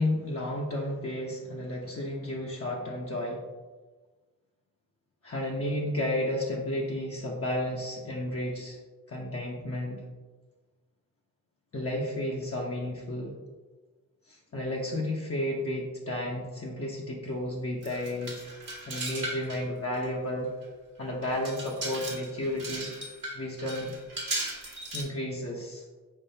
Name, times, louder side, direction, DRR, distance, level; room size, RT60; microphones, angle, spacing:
voice 1, 0.0-3.4 5.2-8.8 9.1-10.0 11.7-13.3 14.3-18.5 18.9-20.5 21.0-22.9 23.3-23.9 24.9-25.8, left 1 dB, 40° left, -3 dB, 0.8 m, -32 dB
sound 1, 17.8-19.6 19.9-20.0 20.6-20.7 21.2-25.0, right 2 dB, 65° right, 1.3 m, -37 dB
4.5 x 3.7 x 2.7 m, 1.3 s
cardioid pair, 40°, 35 cm